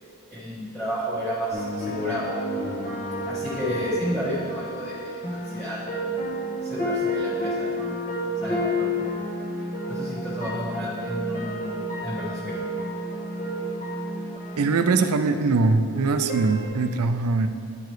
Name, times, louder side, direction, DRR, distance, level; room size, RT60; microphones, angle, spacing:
voice 1, 0.3-2.3 3.2-6.1 6.6-7.8 8.4-8.9 9.9-11.7 12.0-12.6, equal, ahead, -12 dB, 1.1 m, -31 dB
sound 1, 1.5-16.7, equal, 35° left, 1.0 m, -30 dB
voice 2, 14.6-17.5, right 3 dB, 90° right, 9 dB, 0.4 m, -22 dB
10.5 x 4.8 x 3.1 m, 2.3 s
head